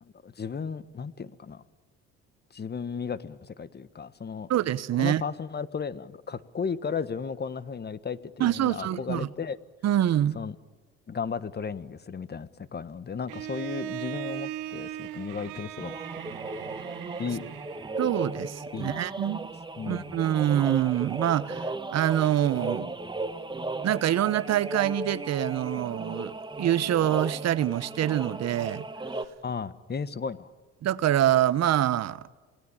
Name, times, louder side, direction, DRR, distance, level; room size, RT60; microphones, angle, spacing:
voice 1, 0.0-1.6 2.5-4.5 5.0-9.6 10.3-10.5 11.1-16.0 17.2-17.4 18.7-19.4 19.8-20.2 29.4-30.5, left 6 dB, 35° left, 1.4 m, -35 dB
voice 2, 4.5-5.2 8.4-9.3 9.8-10.4 18.0-19.5 19.9-22.9 23.8-28.9 30.8-32.3, right 12 dB, 55° right, 1.1 m, -25 dB
Bowed string instrument, 13.3-18.1, right 13 dB, 85° right, 1.6 m, -38 dB
sound 1, 15.8-29.3, right 2 dB, 15° right, 1.5 m, -36 dB
28.0 x 19.5 x 9.0 m
supercardioid pair, 85°, 31 cm